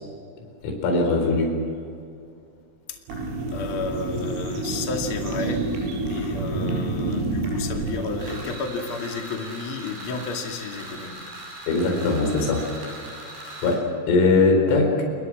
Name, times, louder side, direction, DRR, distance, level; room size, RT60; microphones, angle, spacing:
voice 1, 0.6-1.6 11.7-12.7 13.6-15.0, left 3 dB, 75° left, 3 dB, 7.0 m, -20 dB
sound 1, 3.1-8.5, right 2 dB, 75° right, 7.1 m, -28 dB
voice 2, 3.5-11.2, left 4 dB, 40° left, 2 dB, 2.0 m, -32 dB
sound 2, 8.2-13.8, right 1 dB, 55° right, 9.1 m, -40 dB
29.5 x 21.0 x 6.2 m, 2.3 s
omnidirectional pair, 5.8 m